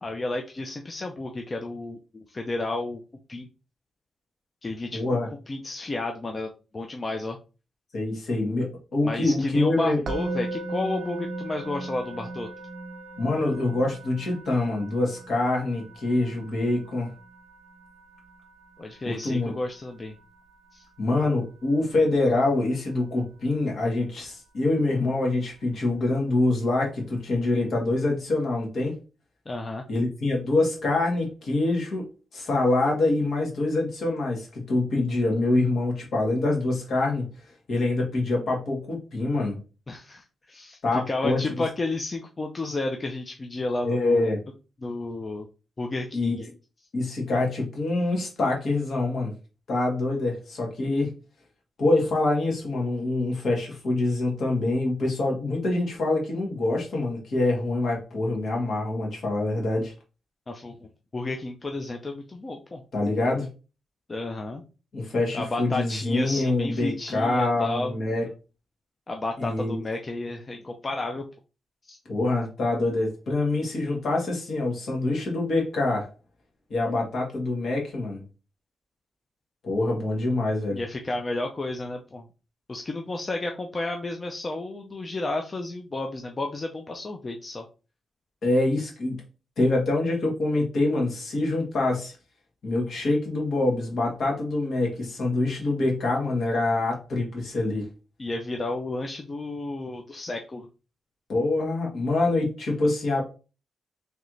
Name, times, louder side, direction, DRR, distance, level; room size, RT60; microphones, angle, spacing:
voice 1, 0.0-3.0 3.3-3.5 4.6-5.0 5.5-7.4 9.0-12.5 18.8-20.1 20.7-20.8 29.5-29.8 39.9-44.3 44.8-45.5 45.8-46.4 60.5-62.8 64.1-64.6 65.3-68.0 69.1-71.2 71.9-72.0 80.7-82.3 82.7-87.7 98.2-100.7, left 2 dB, 25° left, 3 dB, 0.5 m, -32 dB
voice 2, 4.9-5.3 7.9-10.0 13.2-17.1 19.1-19.5 21.0-28.9 29.9-32.1 32.3-37.3 37.7-39.6 40.8-41.4 43.8-44.4 46.1-46.4 46.9-49.3 49.7-51.1 51.8-59.9 62.9-63.5 64.9-68.2 69.4-69.8 72.1-76.1 76.7-78.2 79.6-80.8 88.4-89.2 89.6-92.1 92.6-97.9 101.3-103.2, left 2 dB, 55° left, 0 dB, 1.7 m, -25 dB
Musical instrument, 10.1-21.2, right 2 dB, 40° right, 0.6 m, -38 dB
3.2 x 3.1 x 3.8 m, 0.33 s
wide cardioid pair, 140°, 0 cm